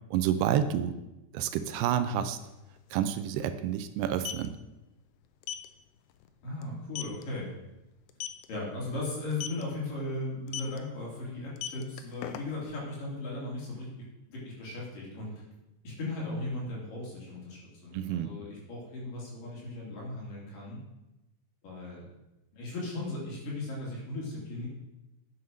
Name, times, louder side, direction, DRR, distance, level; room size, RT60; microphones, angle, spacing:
voice 1, 0.1-1.0 1.3-2.4 2.9-4.5 17.9-18.3, right 10 dB, 80° right, 10 dB, 2.6 m, -29 dB
sound 1, 2.4-2.5 2.8-3.0 4.0-4.5 5.4-5.7 6.1-6.3 6.6-6.7 7.0-7.2 8.1-8.5 9.3-9.6 10.5-10.8 11.4-12.7, left 11 dB, 90° left, 2.8 m, -37 dB
voice 2, 6.4-7.5 8.5-13.9 14.3-15.3 15.8-20.8 21.6-22.1 22.5-24.7, left 2 dB, 55° left, -4 dB, 4.8 m, -37 dB
9.4 x 7.9 x 6.3 m, 0.97 s
omnidirectional pair, 4.8 m